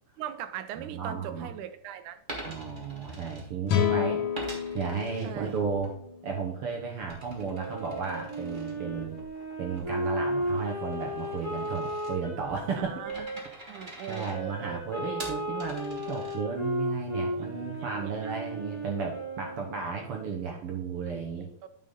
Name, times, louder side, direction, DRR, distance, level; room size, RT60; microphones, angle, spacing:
voice 1, 0.2-2.2 5.2-5.5 12.8-13.3 13.7-14.8 17.3-17.5 17.8-18.6 21.6-21.7, right 10 dB, 80° right, 11 dB, 2.1 m, -40 dB
voice 2, 0.8-1.5 2.4-4.2 4.7-5.9 6.2-9.2 9.6-13.2 14.1-21.5, right 5 dB, 60° right, 1 dB, 1.5 m, -34 dB
Coin (dropping), 2.2-3.9 4.3-5.9 6.3-16.8, right 1 dB, 30° right, 1.0 m, -46 dB
sound 1, 3.7-7.0, left 10 dB, 75° left, 2.3 m, -30 dB
Wind instrument woodwind instrument, 7.5-13.4 14.1-19.9, equal, 20° left, 2.5 m, -35 dB
9.3 x 5.3 x 3.8 m, 0.67 s
omnidirectional pair, 3.6 m